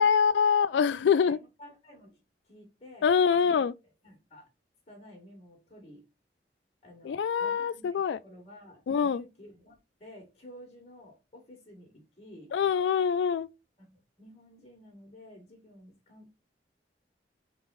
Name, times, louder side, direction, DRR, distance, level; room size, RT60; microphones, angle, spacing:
voice 1, 0.0-1.4 3.0-3.7 7.0-8.2 8.9-9.2 12.5-13.5, left 6 dB, 80° left, 0.3 m, -24 dB
voice 2, 0.9-2.2 2.4-3.6 4.0-4.5 4.9-6.1 6.8-12.5 13.8-16.3, left 1 dB, 35° left, 1.7 m, -52 dB
3.7 x 3.5 x 3.9 m
head